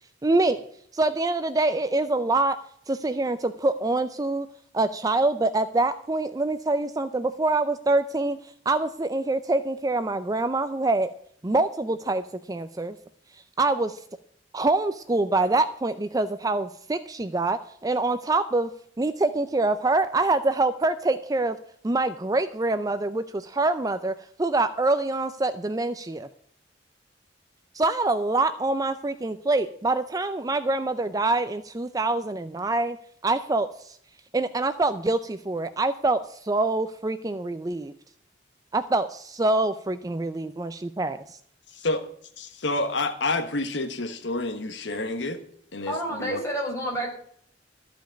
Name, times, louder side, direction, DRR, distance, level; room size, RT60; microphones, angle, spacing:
voice 1, 0.2-0.6 0.9-2.6 2.9-4.5 4.7-8.4 8.7-11.1 11.4-12.2 12.5-13.0 13.6-14.0 14.5-18.7 19.0-21.6 21.8-24.1 24.4-26.3 27.7-33.0 33.2-34.0 34.3-37.9 38.7-41.4, right 2 dB, 20° right, 11 dB, 0.4 m, -25 dB
voice 2, 41.7-42.0 42.4-45.4 45.7-46.4, left 2 dB, 75° left, 7 dB, 1.3 m, -29 dB
voice 3, 45.8-47.1, equal, 15° left, -2 dB, 4.4 m, -29 dB
14.0 x 5.2 x 9.0 m, 0.64 s
head